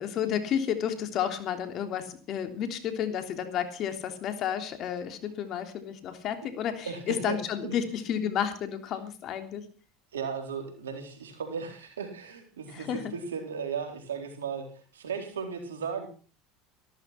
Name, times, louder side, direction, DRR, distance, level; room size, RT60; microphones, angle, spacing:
voice 1, 0.0-9.6 12.7-13.1, left 9 dB, 50° left, 8 dB, 3.3 m, -31 dB
voice 2, 6.8-7.4 7.6-7.8 10.1-14.7 14.9-16.1, right 6 dB, 85° right, 4 dB, 4.1 m, -36 dB
15.0 x 13.5 x 5.9 m, 0.39 s
hypercardioid pair, 80°, 0 cm